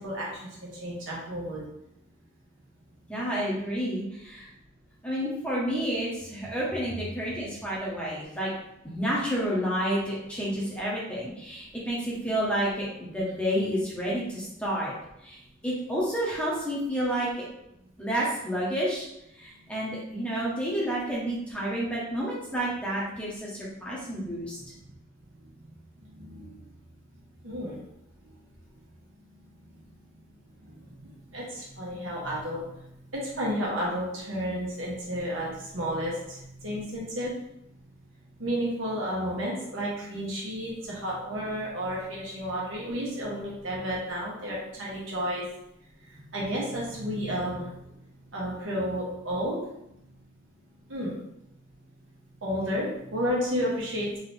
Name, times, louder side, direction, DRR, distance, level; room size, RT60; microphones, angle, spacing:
voice 1, 0.0-1.6 24.8-24.9 25.4-26.6 27.4-27.8 28.2-28.3 30.6-37.3 38.4-45.4 46.0-48.0 48.3-49.7 50.9-51.1 52.4-54.2, equal, 75° right, -5 dB, 1.4 m, -32 dB
voice 2, 3.1-4.5 5.0-8.5 8.8-14.9 15.2-15.4 15.6-17.4 18.0-19.1 19.3-24.6, equal, 5° left, -6 dB, 0.9 m, -30 dB
3.8 x 2.9 x 3.3 m, 0.83 s
head